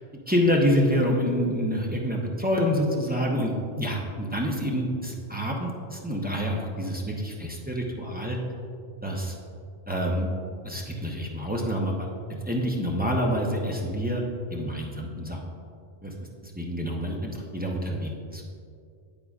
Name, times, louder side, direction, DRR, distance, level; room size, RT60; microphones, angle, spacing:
voice 1, 0.3-8.4 9.0-9.3 9.9-10.3 10.6-12.1 12.5-14.2 14.5-15.4 16.0-16.1 16.4-18.4, equal, 10° right, -2 dB, 0.6 m, -27 dB
8.6 x 8.4 x 2.4 m, 2.3 s
omnidirectional pair, 1.1 m